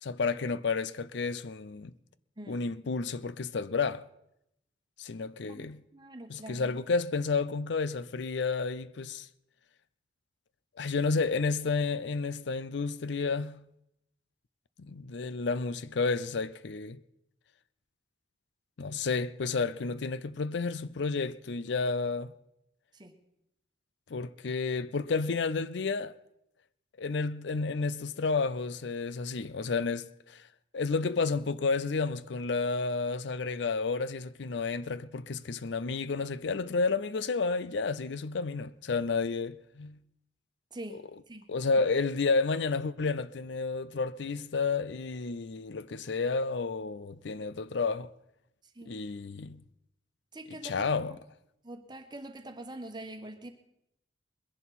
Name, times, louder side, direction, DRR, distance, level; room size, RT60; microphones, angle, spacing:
voice 1, 0.0-1.9 2.5-4.0 5.0-5.8 6.3-9.3 10.8-13.6 14.8-17.0 18.8-22.3 24.1-26.1 27.0-30.5 30.7-40.0 41.5-48.1 48.8-49.6 50.5-51.2, left 4 dB, 75° left, 0.5 m, -31 dB
voice 2, 2.4-2.7 5.5-5.6 5.9-6.7 22.9-23.2 40.7-41.0 41.3-41.5 48.7-48.9 50.3-51.2 51.6-53.5, right 1 dB, 25° right, 1.2 m, -44 dB
21.5 x 11.0 x 4.2 m
head